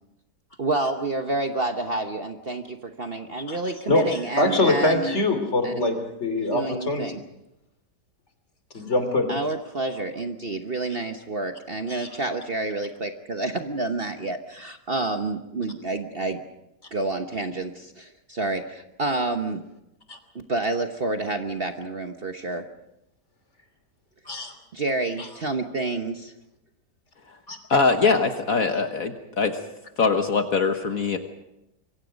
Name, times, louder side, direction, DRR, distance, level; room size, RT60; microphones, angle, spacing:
voice 1, 0.6-5.2 5.6-5.9 6.5-7.2 9.3-16.4 16.9-19.6 20.3-22.6 24.7-26.3, right 2 dB, 40° right, 6 dB, 1.2 m, -29 dB
voice 2, 3.9-7.0 8.7-9.3 11.9-12.1 20.1-20.2 24.2-24.5 25.2-25.3 27.5-27.6, left 2 dB, 40° left, 7 dB, 3.2 m, -24 dB
voice 3, 27.7-29.6 30.0-31.2, left 4 dB, 55° left, 6 dB, 1.7 m, -22 dB
26.0 x 23.0 x 5.2 m, 0.85 s
omnidirectional pair, 1.8 m